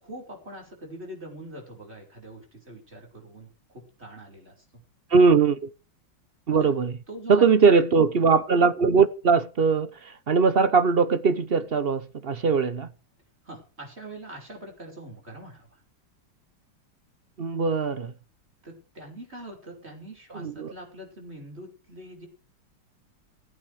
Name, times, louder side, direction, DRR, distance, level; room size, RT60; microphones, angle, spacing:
voice 1, 0.0-4.6 6.6-6.7 7.1-7.6 13.4-15.8 18.6-22.3, right 1 dB, 30° right, 5.8 m, -43 dB
voice 2, 5.1-5.7 6.5-6.9 7.3-12.9 17.4-18.1 20.3-20.7, right 5 dB, 50° right, 0.7 m, -21 dB
16.5 x 8.9 x 5.0 m
omnidirectional pair, 2.2 m